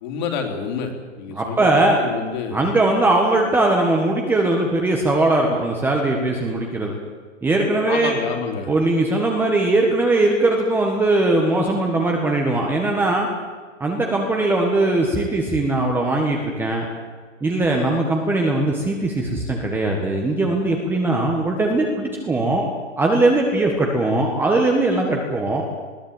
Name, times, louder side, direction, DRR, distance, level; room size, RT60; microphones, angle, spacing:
voice 1, 0.0-0.9 1.2-2.6 7.9-8.7, left 6 dB, 35° left, 3 dB, 3.6 m, -28 dB
voice 2, 1.3-2.0 2.5-6.9 7.4-8.2 8.7-13.3 13.8-16.8 17.4-22.6 23.0-25.6, right 2 dB, 5° right, 1 dB, 1.5 m, -20 dB
21.0 x 15.5 x 8.9 m, 1.5 s
hypercardioid pair, 150°, 38 cm